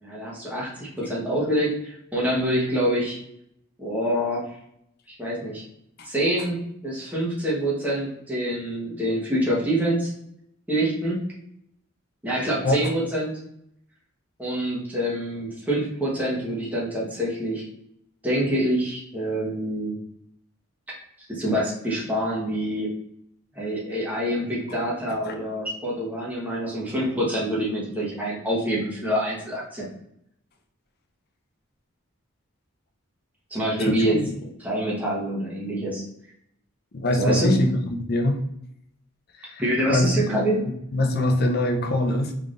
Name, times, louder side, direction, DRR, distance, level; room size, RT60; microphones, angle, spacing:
voice 1, 0.0-3.2 3.8-4.5 5.1-5.6 6.0-6.6 6.8-10.1 10.7-11.2 12.2-13.4 14.4-17.7 18.2-19.9 21.3-22.9 23.5-29.8 33.5-34.2 34.6-36.0 37.1-37.6 39.6-40.6, equal, 10° right, -6 dB, 1.1 m, -26 dB
voice 2, 33.8-34.2 36.9-38.4 39.4-39.6 39.9-40.1 40.9-42.3, left 1 dB, 45° left, 5 dB, 0.5 m, -23 dB
3.5 x 3.5 x 2.5 m, 0.75 s
head